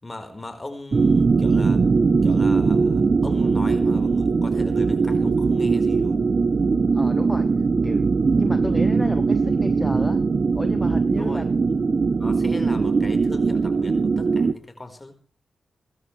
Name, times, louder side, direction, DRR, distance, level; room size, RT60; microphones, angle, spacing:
voice 1, 0.0-1.8 2.2-6.3 11.1-11.8 12.2-15.2, left 2 dB, 30° left, 6 dB, 4.6 m, -39 dB
sound 1, 0.9-14.5, right 4 dB, 60° right, 0.8 m, -20 dB
voice 2, 6.9-7.5 7.8-8.1 8.3-10.2 10.5-11.5, left 1 dB, 15° left, 9 dB, 1.3 m, -31 dB
23.0 x 12.5 x 3.3 m, 0.35 s
supercardioid pair, 40°, 0 cm